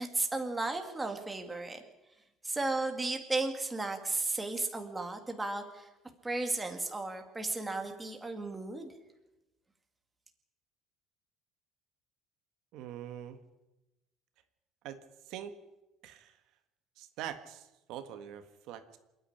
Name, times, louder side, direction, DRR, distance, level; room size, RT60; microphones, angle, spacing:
voice 1, 0.0-1.8 2.4-5.9 6.2-8.9, right 2 dB, 10° right, 4 dB, 2.0 m, -34 dB
voice 2, 12.7-13.4 14.8-15.0 15.3-15.5 16.0-16.4 17.0-19.0, right 10 dB, 65° right, 8 dB, 1.6 m, -43 dB
27.5 x 10.0 x 9.9 m, 0.98 s
cardioid pair, 165°, 0 cm